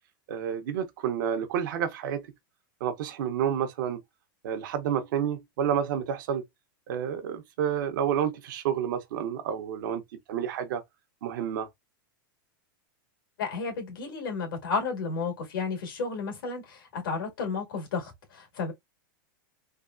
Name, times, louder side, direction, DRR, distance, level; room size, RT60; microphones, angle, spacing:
voice 1, 0.3-2.2 2.8-4.0 4.4-6.4 6.9-10.0 10.3-10.8 11.2-11.7, right 9 dB, 65° right, 0.7 m, -29 dB
voice 2, 13.4-18.7, left 4 dB, 80° left, 1.7 m, -32 dB
3.4 x 2.3 x 2.4 m
hypercardioid pair, 125°, 11 cm